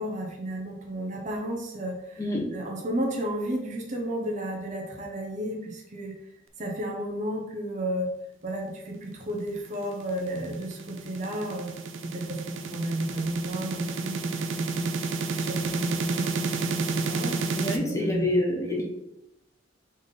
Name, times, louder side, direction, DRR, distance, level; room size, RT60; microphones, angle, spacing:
voice 1, 0.0-2.2 2.5-6.1 6.6-8.1 8.4-11.7 12.0-14.9 15.3-18.4, right 1 dB, 40° right, 0 dB, 0.8 m, -33 dB
voice 2, 2.2-2.5 17.5-18.8, left 1 dB, 15° left, -2 dB, 0.9 m, -27 dB
sound 1, 9.7-17.8, right 4 dB, 80° right, 0.5 m, -31 dB
4.1 x 3.5 x 3.7 m, 0.87 s
head